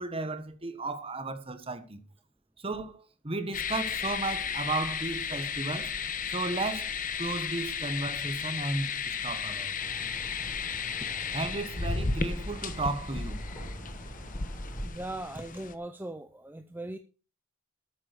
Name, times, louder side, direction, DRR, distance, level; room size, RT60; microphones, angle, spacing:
voice 1, 0.0-2.0 2.6-5.9 6.3-9.9 11.3-13.4, right 2 dB, 30° right, 1.3 m, -34 dB
sound 1, 3.5-15.7, left 5 dB, 40° left, 1.1 m, -34 dB
sound 2, 9.8-14.9, equal, 15° left, 4.9 m, -44 dB
voice 2, 14.8-17.0, right 1 dB, 10° right, 0.6 m, -39 dB
13.0 x 8.6 x 5.1 m
head